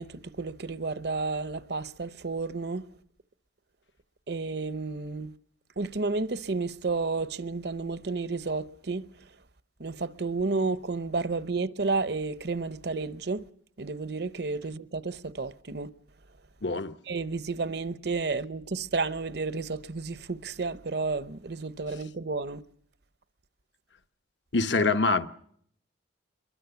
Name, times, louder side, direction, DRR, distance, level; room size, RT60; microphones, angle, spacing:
voice 1, 0.0-2.8 4.3-5.3 5.8-9.1 9.8-13.4 13.8-15.9 17.1-22.6, right 3 dB, 60° right, 0.9 m, -31 dB
voice 2, 16.6-16.9 24.5-25.3, left 3 dB, 70° left, 1.1 m, -24 dB
23.5 x 22.5 x 7.0 m
head